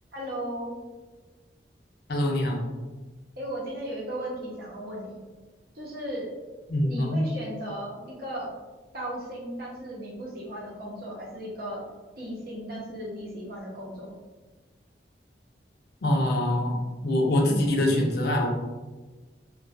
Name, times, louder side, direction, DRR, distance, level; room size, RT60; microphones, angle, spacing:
voice 1, 0.1-0.8 3.4-5.2 5.7-6.3 6.8-8.5 8.9-11.8 12.2-14.1, equal, 60° right, -4 dB, 0.7 m, -36 dB
voice 2, 2.1-2.6 6.7-7.2 16.0-18.5, left 1 dB, 60° left, 0 dB, 0.5 m, -24 dB
2.3 x 2.2 x 2.5 m, 1.2 s
head